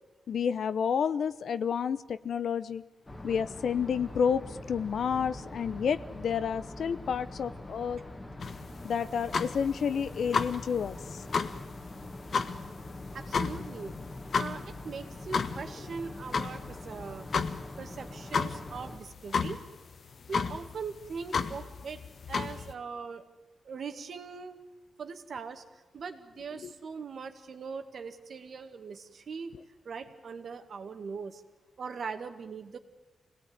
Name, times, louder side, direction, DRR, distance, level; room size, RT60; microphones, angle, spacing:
voice 1, 0.3-2.8 3.2-4.4 4.7-8.0 8.8-11.2 26.6-26.7, left 7 dB, 75° left, 15 dB, 0.9 m, -30 dB
sound 1, 3.1-19.0, left 1 dB, 20° left, 2.0 m, -44 dB
sound 2, 8.4-22.7, left 5 dB, 55° left, 1.2 m, -34 dB
voice 2, 13.1-14.0 14.3-17.3 17.8-19.6 20.3-22.0 22.3-23.3 23.6-24.6 25.0-29.5 29.9-31.4 31.8-32.8, right 5 dB, 60° right, 7 dB, 2.0 m, -41 dB
25.0 x 18.5 x 9.6 m, 1.1 s
wide cardioid pair, 125°, 0 cm